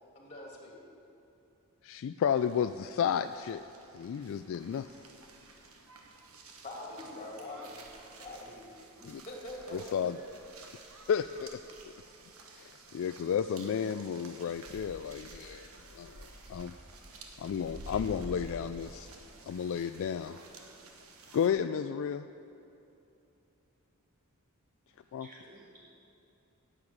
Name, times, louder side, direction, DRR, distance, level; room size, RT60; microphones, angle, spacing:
voice 1, 0.1-0.7 6.6-8.6 9.0-10.0, left 1 dB, 30° left, -1 dB, 2.6 m, -44 dB
voice 2, 1.8-3.6 3.9-4.9 9.0-9.2 9.7-10.2 11.1-11.6 12.6-15.7 15.9-16.7 17.4-19.1 19.5-20.4 21.3-22.3 25.1-25.3, left 7 dB, 60° left, 10 dB, 0.3 m, -32 dB
sound 1, 2.3-21.5, right 2 dB, 65° right, 1.3 m, -51 dB
voice 3, 24.9-25.9, right 1 dB, 40° right, -4 dB, 2.9 m, -56 dB
10.5 x 8.1 x 8.7 m, 2.9 s
head